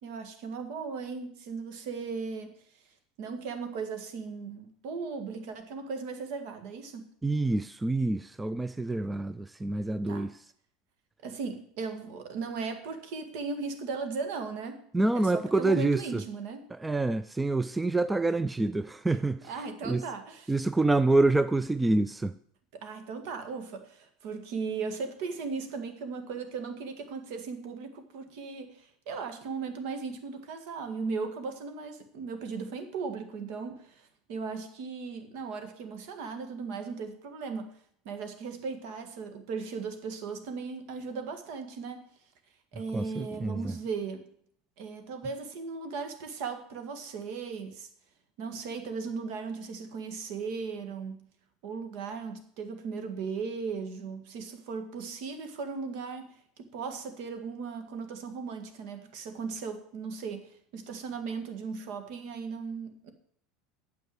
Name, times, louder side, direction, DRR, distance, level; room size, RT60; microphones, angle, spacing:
voice 1, 0.0-2.5 3.2-7.1 10.1-10.3 11.2-14.9 15.1-16.7 19.5-20.5 22.7-37.7 38.1-42.0 42.7-44.2 44.8-47.9 48.4-51.3 51.6-63.1, right 5 dB, 60° right, 1.9 m, -37 dB
voice 2, 7.2-10.3 14.9-16.2 16.8-19.5 19.8-20.0 20.5-22.3 42.9-43.7, right 2 dB, 10° right, 0.4 m, -27 dB
9.4 x 7.2 x 7.9 m
figure-of-eight pair, 80°, 0 cm